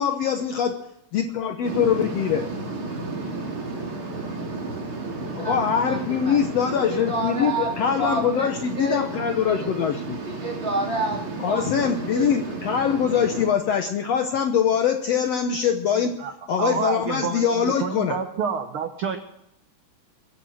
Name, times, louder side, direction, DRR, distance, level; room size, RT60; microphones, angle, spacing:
voice 1, 0.0-2.5 5.4-10.2 11.4-16.2 16.5-18.2, left 7 dB, 65° left, 6 dB, 1.8 m, -23 dB
sound 1, 1.6-13.5, right 3 dB, 40° right, 3.1 m, -33 dB
voice 2, 5.3-6.4 6.9-7.7 8.0-9.0 9.5-9.7 10.2-12.3, right 2 dB, 20° right, -1 dB, 3.5 m, -30 dB
voice 3, 15.9-16.3 16.6-19.2, right 7 dB, 65° right, 7 dB, 1.4 m, -28 dB
22.5 x 8.8 x 6.4 m, 0.78 s
omnidirectional pair, 3.7 m